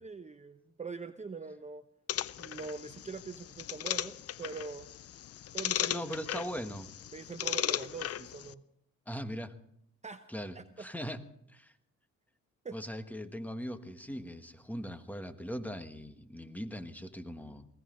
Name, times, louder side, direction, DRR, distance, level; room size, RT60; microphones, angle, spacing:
voice 1, 0.0-1.8 2.4-4.9 5.5-6.4 7.1-8.6 10.0-10.3 10.5-10.9 12.6-12.8, right 4 dB, 25° right, 9 dB, 0.8 m, -43 dB
sound 1, 2.1-8.5, left 11 dB, 50° left, 0.6 m, -37 dB
voice 2, 5.9-6.9 9.1-9.5 10.3-11.2 11.5-11.7 12.7-17.7, equal, 5° left, 8 dB, 1.4 m, -40 dB
20.0 x 17.0 x 3.8 m, 0.73 s
cardioid pair, 90°, 30 cm